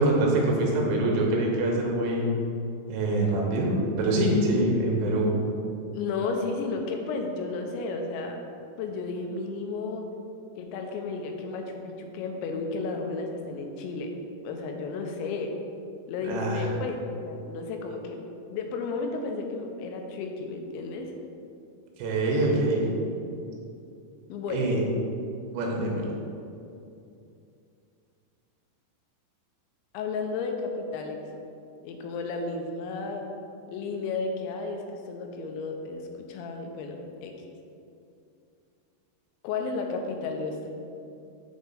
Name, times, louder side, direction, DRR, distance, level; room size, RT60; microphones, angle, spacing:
voice 1, 0.0-2.3 2.9-5.4 16.2-16.7 22.0-22.8 24.5-24.8 25.5-26.0, right 1 dB, 80° right, -1 dB, 3.1 m, -24 dB
voice 2, 5.9-8.4 8.8-10.1 10.6-14.1 14.4-15.5 16.1-17.0 17.3-18.2 18.5-21.1 22.5-22.7 23.1-23.2 24.3-24.7 29.9-31.2 31.8-33.3 33.7-37.4 39.4-40.7, left 4 dB, 85° left, 3 dB, 3.0 m, -33 dB
8.1 x 3.8 x 5.4 m, 2.6 s
omnidirectional pair, 5.2 m